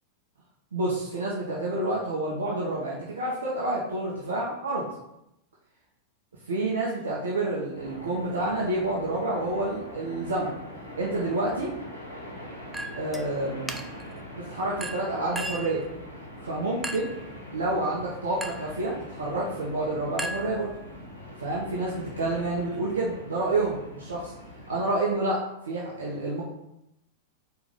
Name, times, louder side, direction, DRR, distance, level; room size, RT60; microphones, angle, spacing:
voice 1, 0.7-4.9 6.5-10.5 11.0-11.7 13.0-13.7 14.4-15.8 16.4-17.1 17.5-20.7 21.4-24.3 24.7-26.4, right 2 dB, 70° right, -4 dB, 1.3 m, -29 dB
sound 1, 7.7-24.8, left 1 dB, 85° left, 1.6 m, -43 dB
Chink clink, 12.7-13.3 13.7-14.1 14.8-15.8 16.8-17.2 18.4-18.7 20.2-21.0, right 1 dB, 5° right, 0.6 m, -36 dB
5.0 x 4.6 x 5.5 m, 0.85 s
figure-of-eight pair, 90°, 0 cm